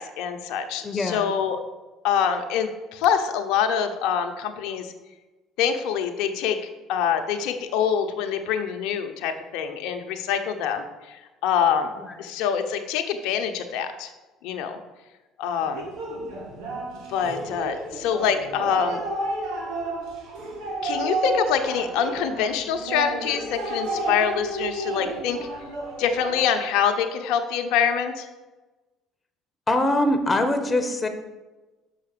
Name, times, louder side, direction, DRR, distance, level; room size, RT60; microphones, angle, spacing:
voice 1, 0.0-1.6 2.0-4.9 5.6-11.9 12.2-14.1 14.4-14.8 15.4-15.9 17.1-19.0 20.8-25.4 26.0-28.3, left 7 dB, 80° left, 6 dB, 0.8 m, -25 dB
voice 2, 0.8-1.3 12.0-12.3 29.7-31.1, left 1 dB, 20° left, 7 dB, 1.2 m, -23 dB
sound 1, 15.6-26.4, right 2 dB, 80° right, 2.1 m, -31 dB
6.3 x 5.8 x 6.8 m, 1.1 s
supercardioid pair, 85°, 0 cm